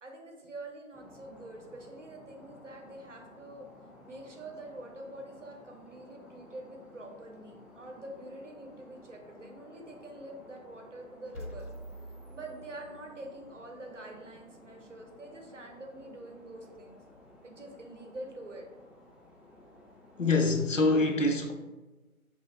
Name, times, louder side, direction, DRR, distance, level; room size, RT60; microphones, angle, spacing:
voice 1, 0.0-3.7 4.0-11.7 12.3-17.0 17.4-18.6, right 2 dB, 55° right, 0.7 m, -46 dB
sound 1, 0.9-20.8, left 2 dB, 5° right, 0.3 m, -55 dB
sound 2, 11.3-13.4, equal, 85° left, 1.0 m, -45 dB
voice 2, 20.2-21.5, left 2 dB, 60° left, 0.6 m, -25 dB
3.0 x 2.4 x 4.3 m
figure-of-eight pair, 170°, 44 cm